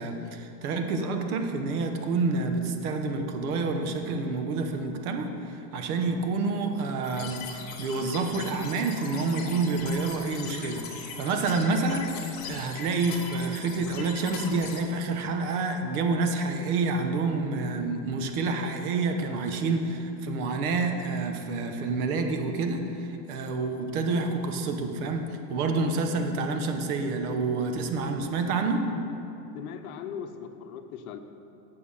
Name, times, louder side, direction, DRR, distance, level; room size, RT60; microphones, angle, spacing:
voice 1, 0.0-28.9, right 3 dB, 65° right, 5 dB, 1.1 m, -28 dB
sound 1, 7.0-14.8, left 5 dB, 20° left, 0.5 m, -40 dB
voice 2, 29.5-31.2, left 8 dB, 65° left, 8 dB, 0.8 m, -39 dB
8.4 x 6.8 x 5.6 m, 2.8 s
supercardioid pair, 165°, 47 cm